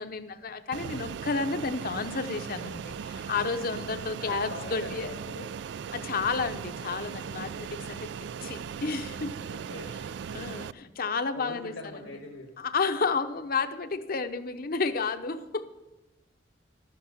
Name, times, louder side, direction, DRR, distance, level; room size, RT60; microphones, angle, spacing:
voice 1, 0.0-5.1 5.9-8.1 8.4-9.3 10.3-12.1 12.6-15.6, left 4 dB, 55° left, 9 dB, 0.8 m, -31 dB
Fixed-wing aircraft airplane, 0.7-10.7, right 7 dB, 65° right, 0.3 m, -38 dB
voice 2, 3.6-5.5 9.5-9.9 11.3-12.5, left 2 dB, 80° left, 2 dB, 1.4 m, -43 dB
12.5 x 10.0 x 7.0 m, 1.0 s
head